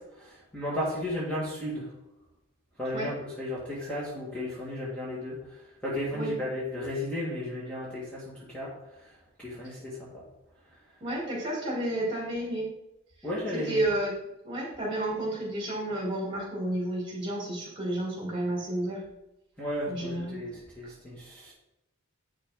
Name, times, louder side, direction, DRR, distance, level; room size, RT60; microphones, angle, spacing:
voice 1, 0.2-1.9 2.8-5.4 5.8-8.2 8.5-8.7 9.4-10.2 13.2-13.8 19.6-21.5, left 1 dB, 5° left, -7 dB, 2.0 m, -34 dB
voice 2, 11.0-12.7 13.5-14.1 14.4-19.0 19.9-20.4, right 1 dB, 25° right, -4 dB, 3.3 m, -31 dB
8.8 x 6.6 x 3.9 m, 0.88 s
head